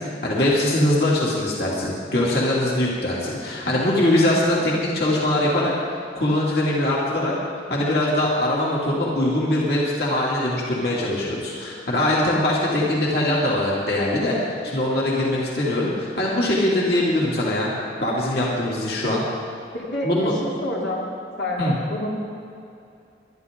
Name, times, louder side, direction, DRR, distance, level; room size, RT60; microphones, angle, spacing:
voice 1, 0.0-5.7 6.1-7.3 7.7-17.7 18.0-19.2 20.0-20.3 21.6-21.8, left 1 dB, 60° left, -5 dB, 2.6 m, -22 dB
voice 2, 19.7-21.0 21.4-22.1, left 1 dB, 85° left, -4 dB, 3.1 m, -28 dB
22.0 x 12.0 x 3.8 m, 2.6 s
head